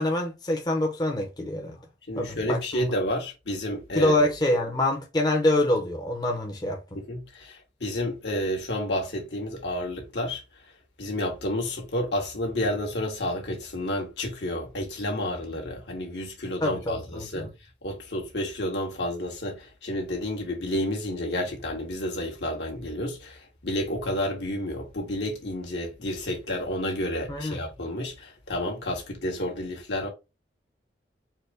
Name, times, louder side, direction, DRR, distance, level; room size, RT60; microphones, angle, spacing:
voice 1, 0.0-1.8 2.2-2.8 3.9-7.0 16.6-17.5 27.3-27.6, left 1 dB, 25° left, 0.7 m, -26 dB
voice 2, 2.1-4.2 6.9-10.4 11.0-17.5 17.8-30.1, left 1 dB, 75° left, 1.6 m, -30 dB
4.5 x 2.1 x 4.7 m
head